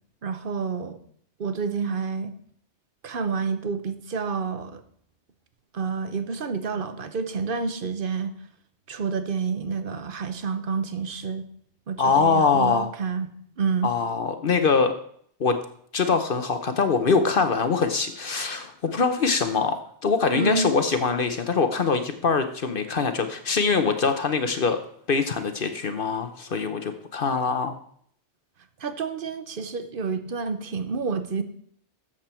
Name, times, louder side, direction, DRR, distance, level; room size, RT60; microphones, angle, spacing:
voice 1, 0.2-1.0 1.4-2.3 3.0-4.8 5.7-8.3 8.9-11.5 11.9-13.3 13.6-13.9 20.3-20.7 28.8-31.4, right 5 dB, 50° right, 10 dB, 1.0 m, -29 dB
voice 2, 12.0-12.9 13.8-14.9 15.4-15.6 15.9-24.8 25.1-27.8, left 5 dB, 55° left, 8 dB, 0.9 m, -23 dB
13.0 x 7.5 x 4.4 m, 0.63 s
omnidirectional pair, 1.2 m